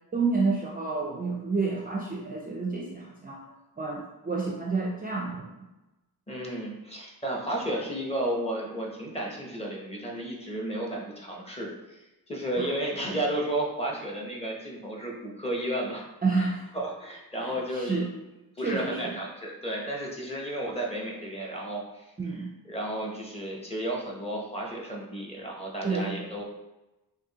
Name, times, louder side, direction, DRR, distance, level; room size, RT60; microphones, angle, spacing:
voice 1, 0.1-3.4 3.8-5.7 12.6-12.7 16.2-16.6 17.4-18.1 18.6-19.1 22.2-22.5 25.8-26.2, right 4 dB, 25° right, -2 dB, 0.4 m, -29 dB
voice 2, 6.3-12.0 12.3-16.0 16.4-16.5 16.7-18.0 18.6-22.1 22.7-26.4, right 1 dB, 15° left, -2 dB, 0.8 m, -33 dB
6.1 x 2.7 x 2.9 m, 1.0 s
wide cardioid pair, 175°, 38 cm